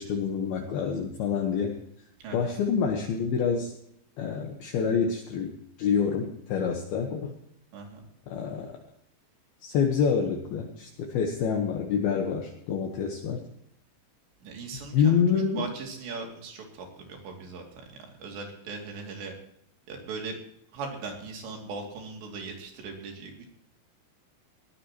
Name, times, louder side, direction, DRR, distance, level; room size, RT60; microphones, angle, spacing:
voice 1, 0.0-1.8 2.3-3.7 4.2-7.3 8.3-8.8 9.6-13.4 14.9-15.7, left 6 dB, 70° left, 2 dB, 2.8 m, -27 dB
voice 2, 2.2-2.5 7.7-8.0 14.4-15.2 15.6-19.3 19.9-20.4 20.7-23.5, right 4 dB, 70° right, 1 dB, 4.9 m, -39 dB
19.5 x 14.5 x 3.1 m, 0.68 s
omnidirectional pair, 5.2 m